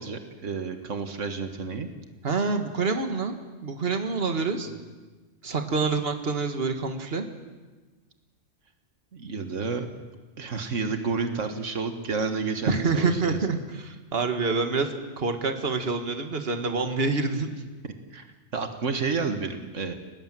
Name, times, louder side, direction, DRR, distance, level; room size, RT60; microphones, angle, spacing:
voice 1, 0.0-1.9 4.6-4.7 9.1-9.9 10.4-13.4 18.1-18.3 18.5-19.9, right 4 dB, 85° right, 7 dB, 2.0 m, -30 dB
voice 2, 2.2-3.4 3.6-4.7 5.4-7.3 12.7-17.6, right 4 dB, 55° right, 6 dB, 2.0 m, -27 dB
30.0 x 18.5 x 7.7 m, 1.3 s
omnidirectional pair, 1.3 m